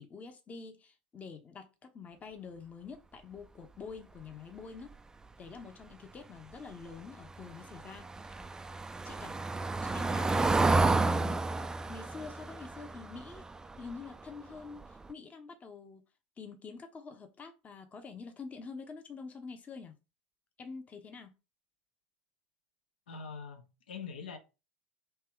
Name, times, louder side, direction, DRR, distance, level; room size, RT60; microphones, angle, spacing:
voice 1, 0.0-4.9 5.4-8.3 9.0-9.4 9.8-11.4 11.9-13.4 13.8-16.0 16.4-20.0 20.6-21.3, left 5 dB, 25° left, 0.8 m, -46 dB
Car passing by / Engine, 7.3-14.2 14.6-14.8 15.1-15.2, right 3 dB, 10° right, 0.3 m, -31 dB
voice 2, 23.1-24.4, left 5 dB, 75° left, 0.8 m, -43 dB
3.4 x 3.0 x 4.5 m
figure-of-eight pair, 75°, 6 cm